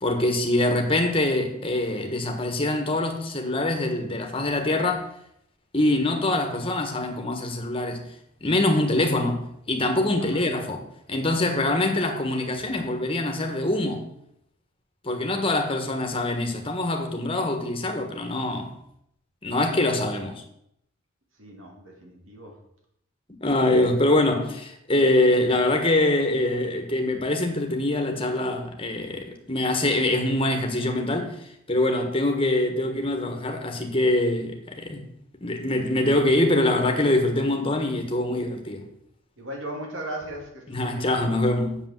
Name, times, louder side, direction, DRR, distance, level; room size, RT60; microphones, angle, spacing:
voice 1, 0.0-5.1 5.7-8.0 8.4-14.1 15.0-18.7 19.4-20.4 23.4-35.1 35.4-38.8 40.7-41.8, left 1 dB, 25° left, 1.4 m, -24 dB
voice 2, 21.4-22.5 39.4-40.5 40.8-41.2, right 1 dB, 70° right, 3.2 m, -37 dB
8.1 x 6.9 x 7.6 m
head